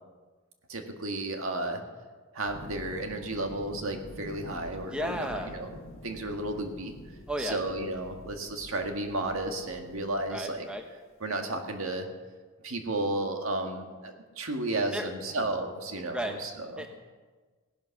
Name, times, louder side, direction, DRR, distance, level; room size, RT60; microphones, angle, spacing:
voice 1, 0.7-1.8 2.3-5.8 6.0-6.9 7.4-10.7 11.2-12.1 12.6-16.9, right 2 dB, 70° right, 4 dB, 1.8 m, -33 dB
sound 1, 2.5-10.6 12.0-12.1, left 1 dB, 65° left, 1.4 m, -47 dB
voice 2, 4.9-5.5 7.3-7.6 10.3-10.8 14.9-15.1 16.1-16.4 16.8-16.9, equal, 5° right, 4 dB, 0.9 m, -33 dB
17.0 x 11.5 x 5.9 m, 1.4 s
head